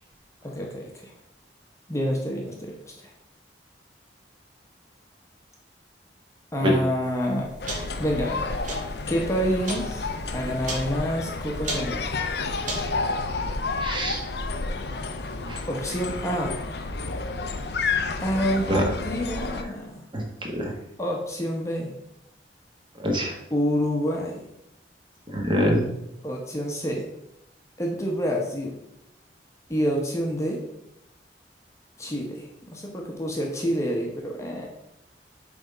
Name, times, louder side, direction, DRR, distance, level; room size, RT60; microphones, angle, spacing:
voice 1, 0.4-1.1 1.9-3.1 6.5-7.5 8.0-8.8 9.1-12.0 15.7-16.6 18.2-20.1 21.0-21.9 23.5-24.5 26.2-27.1 27.8-28.7 29.7-30.6 32.0-34.7, equal, 15° left, 0 dB, 1.0 m, -28 dB
sound 1, 7.0-13.0, right 1 dB, 45° right, 2.1 m, -37 dB
sound 2, 7.6-19.6, left 3 dB, 65° left, 0.6 m, -30 dB
voice 2, 13.8-14.2 15.4-15.6 18.7-18.8 20.1-20.2 20.5-20.7 23.0-23.3 25.3-25.8, equal, 30° right, 0 dB, 1.4 m, -24 dB
7.8 x 3.5 x 5.4 m, 0.82 s
head